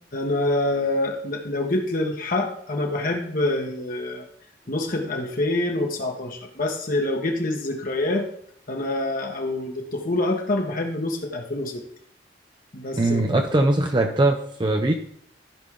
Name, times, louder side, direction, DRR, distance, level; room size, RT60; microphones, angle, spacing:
voice 1, 0.1-4.2 4.7-8.3 8.7-11.8 12.7-13.4, left 2 dB, 50° left, 2 dB, 1.4 m, -26 dB
voice 2, 13.0-14.9, right 2 dB, 25° right, 4 dB, 0.6 m, -21 dB
14.0 x 5.4 x 3.7 m, 0.67 s
head